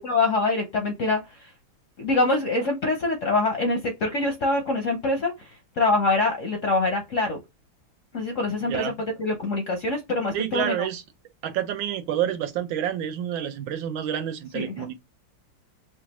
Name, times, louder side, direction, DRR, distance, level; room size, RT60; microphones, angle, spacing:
voice 1, 0.0-1.5 2.0-5.5 5.8-7.4 8.1-8.9 9.2-10.9 14.5-15.0, left 2 dB, 60° left, 0.8 m, -25 dB
voice 2, 10.3-11.0 11.4-15.0, right 10 dB, 80° right, 1.5 m, -28 dB
4.9 x 2.3 x 2.9 m
omnidirectional pair, 2.1 m